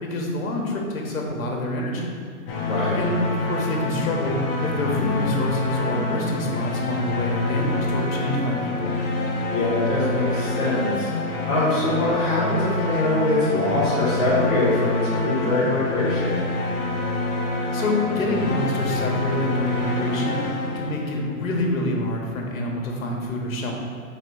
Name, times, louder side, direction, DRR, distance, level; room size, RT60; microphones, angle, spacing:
voice 1, 0.0-2.2 2.9-8.9 17.7-20.4 20.7-23.7, left 1 dB, 65° left, 0 dB, 1.4 m, -27 dB
sound 1, 2.5-21.4, left 2 dB, 40° left, 0.9 m, -26 dB
voice 2, 2.6-3.0 9.5-11.1 11.5-16.5, left 1 dB, 5° left, -12 dB, 0.4 m, -23 dB
4.2 x 4.2 x 5.5 m, 2.2 s
hypercardioid pair, 155°, 43 cm